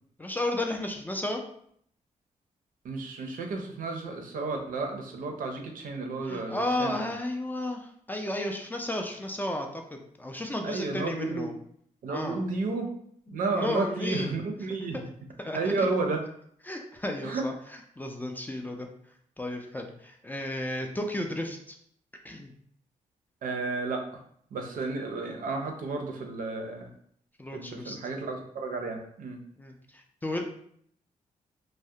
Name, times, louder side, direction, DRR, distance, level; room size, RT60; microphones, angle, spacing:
voice 1, 0.2-1.4 6.2-11.5 12.1-12.4 13.3-14.3 15.4-15.9 16.7-17.5 18.0-18.9 19.4-21.8 22.2-22.5 27.4-28.0 29.6-30.5, left 1 dB, 10° left, 3 dB, 0.3 m, -33 dB
voice 2, 2.8-7.1 10.6-11.5 12.0-12.9 13.3-15.0 15.5-16.2 17.2-17.4 23.4-24.1 24.5-26.9 27.5-29.4, right 3 dB, 70° right, 3 dB, 0.5 m, -32 dB
2.3 x 2.1 x 2.7 m, 0.66 s
cardioid pair, 70°, 14 cm